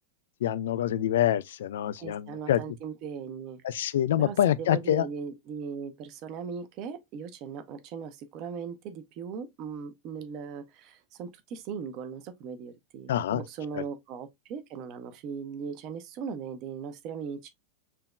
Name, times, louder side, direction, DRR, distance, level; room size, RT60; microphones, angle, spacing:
voice 1, 0.4-2.6 3.6-5.1 13.1-13.4 13.8-13.9, left 11 dB, 60° left, 0.3 m, -26 dB
voice 2, 2.0-3.6 4.2-17.5, right 6 dB, 40° right, 0.8 m, -38 dB
6.0 x 2.9 x 2.2 m
figure-of-eight pair, 90°, 0 cm